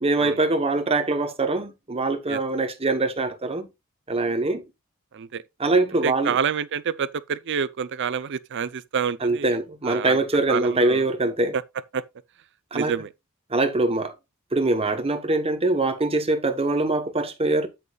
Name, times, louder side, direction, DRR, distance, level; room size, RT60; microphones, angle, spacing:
voice 1, 0.0-3.7 4.1-4.6 5.6-6.4 9.2-11.6 12.7-12.9 13.5-14.1 14.5-17.7, right 2 dB, 25° right, 1.0 m, -23 dB
voice 2, 5.1-5.4 6.0-9.6 9.8-10.2 10.5-11.0 11.5-11.6 11.9-12.0 12.7-13.1, right 7 dB, 55° right, 0.5 m, -28 dB
8.9 x 8.4 x 2.3 m
head